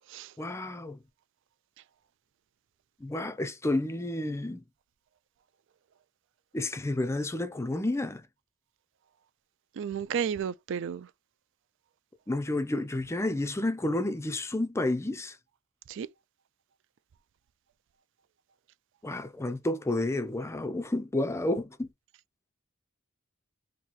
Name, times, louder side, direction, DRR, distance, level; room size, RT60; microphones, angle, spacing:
voice 1, 0.4-1.0 3.0-4.6 6.5-8.3 12.3-15.4 19.0-21.9, left 2 dB, 15° left, 0.4 m, -30 dB
voice 2, 9.8-11.1 15.9-16.1, right 7 dB, 60° right, 0.4 m, -32 dB
2.9 x 2.7 x 4.0 m
head